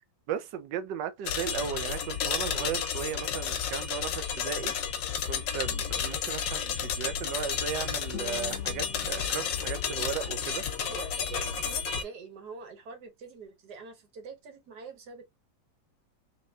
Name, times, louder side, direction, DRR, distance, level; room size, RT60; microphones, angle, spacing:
voice 1, 0.3-4.7 5.2-10.6 11.3-11.5, right 8 dB, 80° right, 1.3 m, -36 dB
sound 1, 1.3-12.0, left 7 dB, 80° left, 1.4 m, -32 dB
Guitar, 8.1-11.1, left 9 dB, 45° left, 1.4 m, -48 dB
voice 2, 10.9-15.3, right 4 dB, 65° right, 1.8 m, -45 dB
4.3 x 3.0 x 2.5 m
omnidirectional pair, 1.9 m